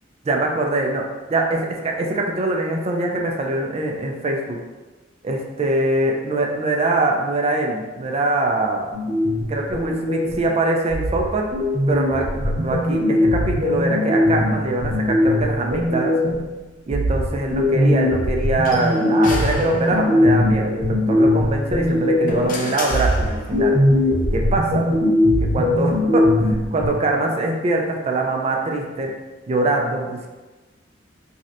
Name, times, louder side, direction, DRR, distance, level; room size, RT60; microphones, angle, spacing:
voice 1, 0.3-1.0 1.3-4.6 5.2-8.9 9.5-11.5 11.9-16.1 16.9-23.8 24.3-24.9 25.5-29.1 29.5-30.3, right 2 dB, 35° right, 1 dB, 0.3 m, -23 dB
sound 1, 8.9-10.5 10.9-16.5 16.9-22.5 22.9-26.9, left 1 dB, 70° right, 1.1 m, -20 dB
sound 2, 18.7-20.4 21.7-23.8, left 2 dB, 45° left, 0.5 m, -32 dB
3.1 x 2.7 x 2.6 m, 1.2 s
head